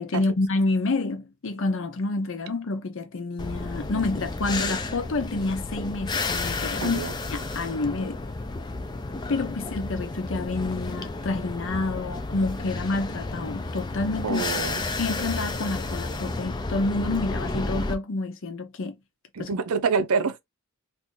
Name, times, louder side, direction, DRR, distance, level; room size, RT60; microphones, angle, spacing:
voice 1, 0.0-7.0 7.3-8.2 9.3-14.4 15.0-18.9 19.4-19.5, left 3 dB, 60° left, 0.6 m, -28 dB
sound 1, 3.4-17.9, left 3 dB, 20° left, 0.3 m, -32 dB
voice 2, 6.8-7.1 14.2-14.8 19.3-20.4, right 5 dB, 80° right, 0.5 m, -26 dB
2.6 x 2.5 x 3.7 m
head